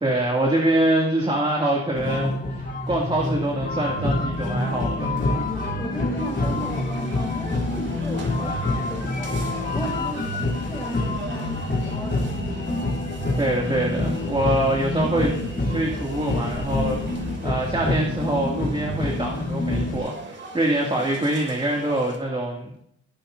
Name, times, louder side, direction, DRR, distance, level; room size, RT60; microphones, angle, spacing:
voice 1, 0.0-5.2 13.4-15.3 15.7-22.8, right 1 dB, 20° right, -2 dB, 2.4 m, -24 dB
sound 1, 1.9-20.0, left 2 dB, 35° left, 3.3 m, -27 dB
voice 2, 5.3-10.3 10.7-12.4 12.7-12.9, right 1 dB, 5° left, -4 dB, 3.5 m, -36 dB
sound 2, 6.2-22.2, right 3 dB, 40° right, 2.9 m, -41 dB
18.5 x 8.8 x 2.7 m, 0.71 s
cardioid pair, 90°, 30 cm